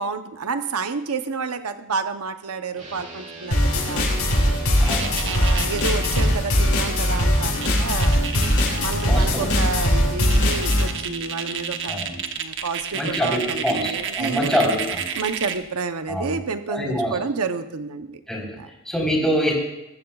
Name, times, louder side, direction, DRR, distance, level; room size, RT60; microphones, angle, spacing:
voice 1, 0.0-4.5 5.2-8.2 8.8-12.0 12.4-14.5 15.1-18.2 18.5-18.7, right 4 dB, 85° right, 8 dB, 0.8 m, -30 dB
sound 1, 2.8-12.1, equal, 35° right, 4.6 m, -39 dB
sound 2, 3.5-10.9, left 1 dB, 70° left, 6.2 m, -20 dB
voice 2, 4.8-5.2 9.1-9.6 11.9-12.2 12.9-15.0 16.1-16.3 16.7-17.1 18.3-18.4 18.9-19.5, equal, 5° left, -3 dB, 3.9 m, -24 dB
sound 3, 4.8-6.3 7.3-7.4 7.6-9.2 9.7-9.8 10.2-15.7, right 7 dB, 60° right, 1.1 m, -30 dB
21.0 x 14.5 x 2.4 m, 0.95 s
head